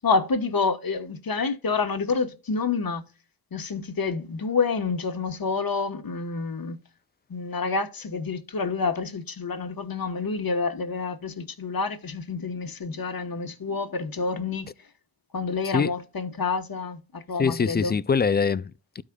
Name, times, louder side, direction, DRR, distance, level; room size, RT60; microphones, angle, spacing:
voice 1, 0.0-3.0 3.5-6.8 7.3-14.7 15.3-18.0, left 4 dB, 45° left, 1.2 m, -28 dB
voice 2, 17.4-19.0, left 5 dB, 25° left, 0.3 m, -24 dB
12.5 x 4.9 x 2.3 m
cardioid pair, 45°, 48 cm